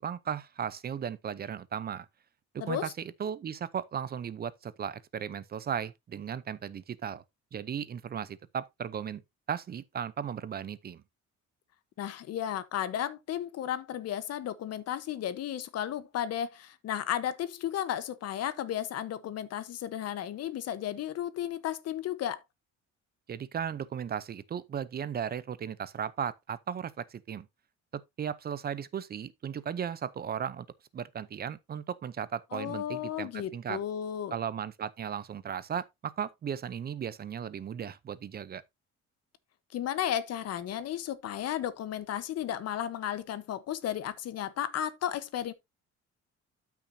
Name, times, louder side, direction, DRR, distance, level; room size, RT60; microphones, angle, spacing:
voice 1, 0.0-2.1 2.5-2.9 3.2-7.2 7.5-9.2 9.5-11.0 23.3-27.5 27.9-30.7 30.9-33.8 34.3-38.6, right 8 dB, 35° right, 0.6 m, -36 dB
voice 2, 2.6-2.9 12.0-22.4 32.5-34.3 39.7-45.5, left 10 dB, 60° left, 1.1 m, -34 dB
12.5 x 6.0 x 2.7 m
cardioid pair, 145°, 29 cm